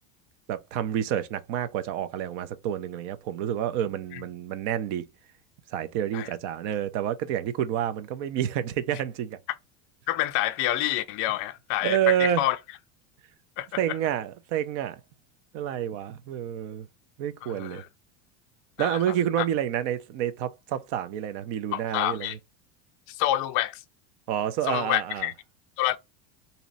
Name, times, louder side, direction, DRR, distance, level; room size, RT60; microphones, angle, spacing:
voice 1, 0.5-5.0 5.7-9.4 11.8-12.4 13.8-15.0 15.5-16.9 17.2-17.8 18.8-22.4 24.3-25.3, right 10 dB, 50° right, 0.6 m, -29 dB
voice 2, 10.1-12.6 13.6-14.0 17.4-17.9 18.8-19.0 19.4-19.5 21.7-22.4 23.1-23.8 24.7-25.3 25.8-26.0, left 14 dB, 35° left, 0.4 m, -28 dB
3.1 x 2.8 x 4.0 m
cardioid pair, 170°, 37 cm